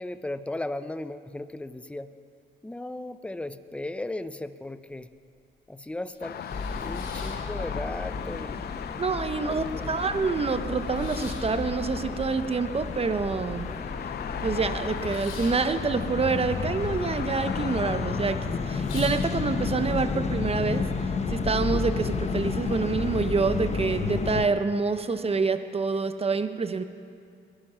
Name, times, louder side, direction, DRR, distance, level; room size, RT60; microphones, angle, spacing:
voice 1, 0.0-2.1 2.6-5.1 5.7-6.4 6.8-8.6 9.5-10.0, left 2 dB, 5° left, 12 dB, 0.6 m, -36 dB
sound 1, 5.4-5.5 5.9-8.1 8.4-9.2 9.5-9.6 9.8-14.0 14.2-17.0 17.3-17.8 18.2-18.3 18.6-19.7, left 4 dB, 75° left, 3.0 m, -46 dB
sound 2, 6.2-24.3, left 8 dB, 55° left, 0.6 m, -39 dB
sound 3, 6.5-24.5, left 4 dB, 35° left, 1.0 m, -32 dB
voice 2, 9.0-13.7 14.4-20.8 21.3-26.8, right 4 dB, 30° right, 9 dB, 0.9 m, -27 dB
22.0 x 10.0 x 5.8 m, 2.4 s
cardioid pair, 90°, 20 cm